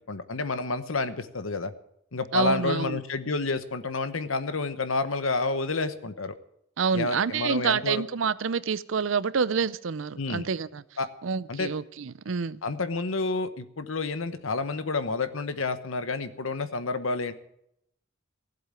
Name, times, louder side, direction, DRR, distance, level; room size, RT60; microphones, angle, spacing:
voice 1, 0.1-1.7 2.1-6.3 6.9-8.0 10.2-10.5 11.0-11.1 11.5-11.7 12.6-17.3, left 3 dB, 85° left, 12 dB, 1.1 m, -29 dB
voice 2, 2.3-3.0 6.8-10.8 11.2-12.6, right 5 dB, 70° right, 18 dB, 0.5 m, -28 dB
15.5 x 7.9 x 9.0 m, 0.77 s
head